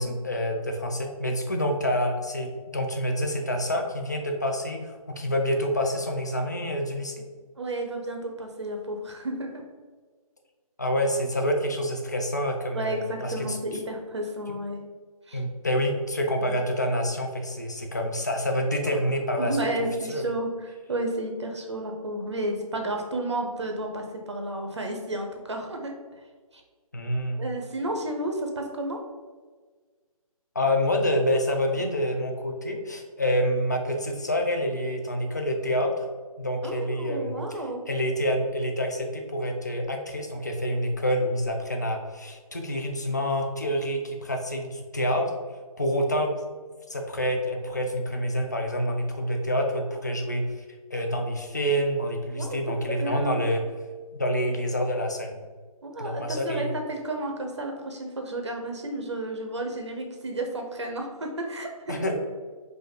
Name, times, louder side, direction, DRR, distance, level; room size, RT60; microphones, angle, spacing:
voice 1, 0.0-7.3 10.8-13.6 15.3-19.6 20.1-20.2 26.9-27.4 30.5-36.1 36.4-45.3 45.8-46.3 46.9-50.6 50.9-53.6 54.1-55.4 56.0-56.7 61.9-62.2, equal, 30° left, 3 dB, 0.4 m, -27 dB
voice 2, 7.6-9.6 12.7-14.8 15.3-15.4 16.4-16.5 19.4-25.9 27.4-29.0 36.6-37.8 52.3-52.6 53.0-53.4 55.8-62.0, right 1 dB, 50° right, 3 dB, 0.7 m, -32 dB
4.9 x 2.5 x 4.4 m, 1.4 s
hypercardioid pair, 175°, 19 cm